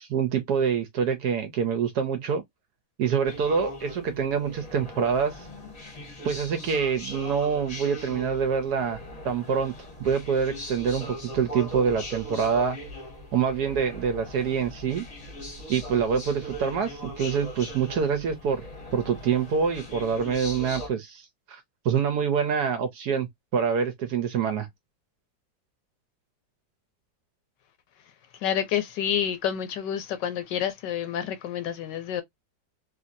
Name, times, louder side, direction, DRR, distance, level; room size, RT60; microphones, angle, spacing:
voice 1, 0.0-2.4 3.0-5.5 6.2-9.0 9.2-9.7 10.0-12.8 13.3-15.0 15.7-18.7 18.9-24.7, right 6 dB, 70° right, 1.0 m, -26 dB
sound 1, 3.2-20.9, equal, 25° left, 0.8 m, -40 dB
voice 2, 28.4-32.2, left 9 dB, 70° left, 1.2 m, -28 dB
3.1 x 2.7 x 2.5 m
omnidirectional pair, 2.1 m